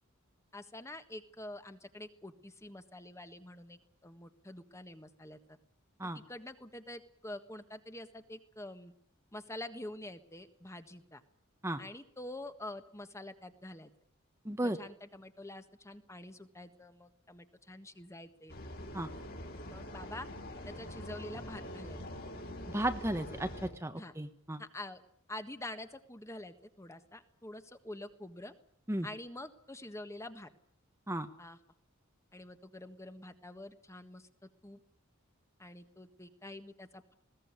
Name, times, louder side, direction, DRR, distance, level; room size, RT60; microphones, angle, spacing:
voice 1, 0.5-5.4 6.1-8.9 9.3-11.2 11.8-13.9 14.6-18.5 19.7-20.3 20.6-22.0 24.0-24.1 24.6-25.0 25.3-28.5 29.0-30.5 31.4-31.6 32.3-34.8 35.6-37.1, left 1 dB, 15° left, 9 dB, 1.5 m, -47 dB
voice 2, 14.4-14.8 18.9-19.1 22.7-24.6 28.9-29.1 31.1-31.3, right 1 dB, 15° right, 7 dB, 1.1 m, -34 dB
sound 1, 18.5-23.7, left 1 dB, 50° left, 4.4 m, -44 dB
20.5 x 17.5 x 9.7 m, 0.65 s
head